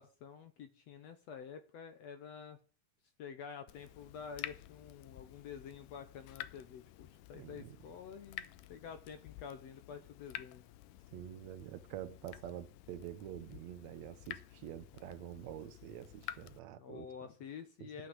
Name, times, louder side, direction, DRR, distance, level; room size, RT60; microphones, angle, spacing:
voice 1, 0.0-2.6 3.2-10.6 16.8-18.1, left 7 dB, 65° left, 1.8 m, -49 dB
Water tap faucet / Drip, 3.7-16.6, left 13 dB, 85° left, 2.4 m, -51 dB
voice 2, 7.3-7.8 11.1-17.1 17.8-17.9, right 11 dB, 70° right, 1.8 m, -47 dB
11.5 x 8.7 x 7.9 m
omnidirectional pair, 3.8 m